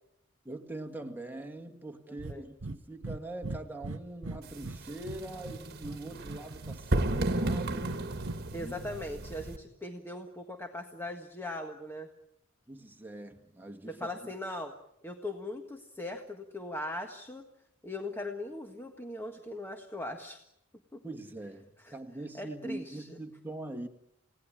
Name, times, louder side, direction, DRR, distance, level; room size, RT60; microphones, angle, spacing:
voice 1, 0.5-8.0 8.6-8.7 12.7-14.1 21.0-23.9, right 2 dB, 10° right, 2.0 m, -42 dB
Breathing, 2.2-2.4 2.6-3.2 3.4-4.8 5.0-6.0 6.3-7.2 7.4-8.3, right 2 dB, 70° right, 1.0 m, -38 dB
sound 1, 4.4-9.6, right 1 dB, 50° right, 1.7 m, -34 dB
voice 2, 8.5-12.1 13.9-14.7 15.0-17.5 17.8-20.4 20.9-21.0 21.8-22.0 22.3-23.2, left 1 dB, 10° left, 1.7 m, -40 dB
29.5 x 18.0 x 8.9 m
head